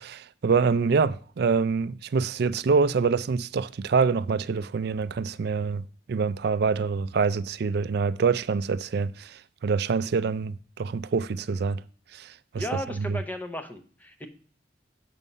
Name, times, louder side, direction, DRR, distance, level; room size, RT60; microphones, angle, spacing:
voice 1, 0.0-5.8 6.1-11.8 12.1-12.6 13.0-13.2, right 5 dB, 60° right, 0.4 m, -26 dB
voice 2, 12.6-14.3, equal, 10° left, 0.7 m, -35 dB
7.2 x 5.4 x 5.4 m
head